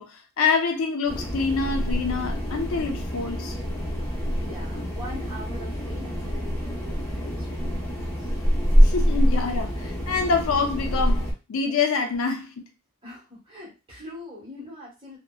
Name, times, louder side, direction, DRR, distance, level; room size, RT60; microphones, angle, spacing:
voice 1, 0.0-3.6 8.8-12.7, left 4 dB, 80° left, 0.5 m, -26 dB
sound 1, 1.1-11.3, equal, 10° left, 0.8 m, -25 dB
voice 2, 4.3-8.3 13.0-15.2, left 1 dB, 25° right, 1.2 m, -43 dB
2.7 x 2.1 x 2.2 m
head